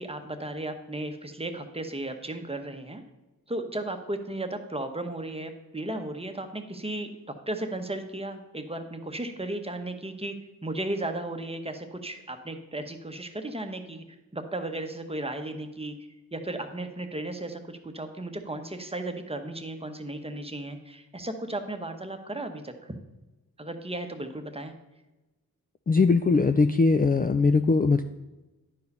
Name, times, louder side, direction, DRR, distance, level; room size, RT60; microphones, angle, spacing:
voice 1, 0.0-3.0 3.5-10.3 10.6-14.0 14.3-16.0 16.3-23.0 23.6-24.7, right 1 dB, 15° right, 6 dB, 1.0 m, -35 dB
voice 2, 25.9-28.0, left 4 dB, 25° left, 9 dB, 0.4 m, -21 dB
10.5 x 4.7 x 5.4 m, 1.1 s
wide cardioid pair, 80°, 37 cm